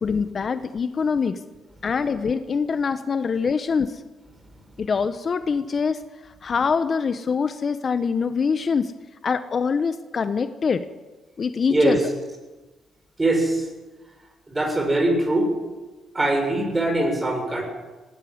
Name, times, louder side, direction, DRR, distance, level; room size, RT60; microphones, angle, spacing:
voice 1, 0.0-1.4 1.8-4.0 4.8-8.9 9.2-10.9 11.4-12.0, left 5 dB, 45° left, 11 dB, 1.0 m, -24 dB
voice 2, 13.2-13.7 14.5-15.5 16.1-17.6, right 1 dB, 20° right, 4 dB, 6.9 m, -22 dB
18.5 x 18.0 x 8.0 m, 1.2 s
cardioid pair, 90°, 0 cm